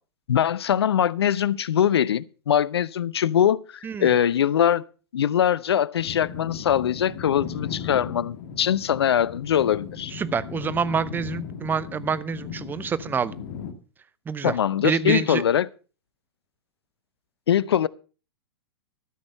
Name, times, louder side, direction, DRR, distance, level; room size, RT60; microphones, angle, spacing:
voice 1, 0.3-4.8 5.1-10.1 14.4-15.7 17.5-17.9, left 9 dB, 75° left, 0.6 m, -22 dB
voice 2, 3.8-4.2 10.1-13.4 14.3-15.4, right 6 dB, 15° right, 0.6 m, -27 dB
sound 1, 5.9-13.7, left 7 dB, 55° left, 1.9 m, -37 dB
13.5 x 6.2 x 6.6 m
hypercardioid pair, 115°, 13 cm